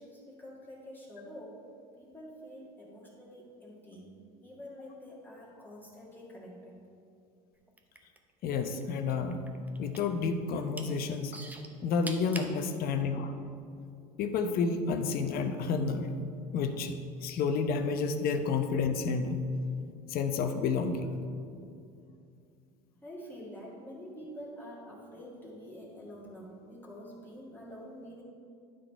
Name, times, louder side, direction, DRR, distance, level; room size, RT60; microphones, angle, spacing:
voice 1, 0.0-1.7 1.9-6.8 22.9-28.2, equal, 10° left, -5 dB, 1.7 m, -47 dB
sound 1, 7.7-8.8 9.1-10.2 10.5-10.9 11.3-12.5 13.2-13.3, right 2 dB, 10° right, 0.7 m, -42 dB
voice 2, 8.4-9.4 9.8-11.4 11.8-13.4 14.2-16.1 16.5-19.4 20.1-21.2, left 5 dB, 45° left, 7 dB, 0.7 m, -30 dB
11.0 x 3.9 x 4.4 m, 2.4 s
hypercardioid pair, 85°, 21 cm